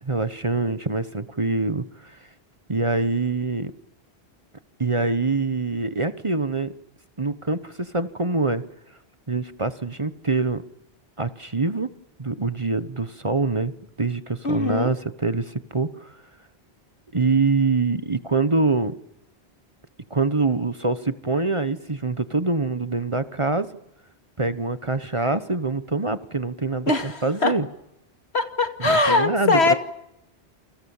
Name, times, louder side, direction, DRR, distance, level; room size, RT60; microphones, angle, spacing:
voice 1, 0.0-2.2 2.7-3.7 4.8-6.7 7.2-8.6 9.3-10.6 11.2-11.9 12.2-13.7 14.0-16.2 17.1-18.9 20.1-23.7 24.4-27.7 28.8-29.6, right 3 dB, 30° right, 12 dB, 1.1 m, -24 dB
voice 2, 14.4-14.9 26.9-27.5 28.3-29.8, left 3 dB, 75° left, 6 dB, 2.6 m, -21 dB
29.5 x 25.5 x 7.3 m, 0.85 s
omnidirectional pair, 1.1 m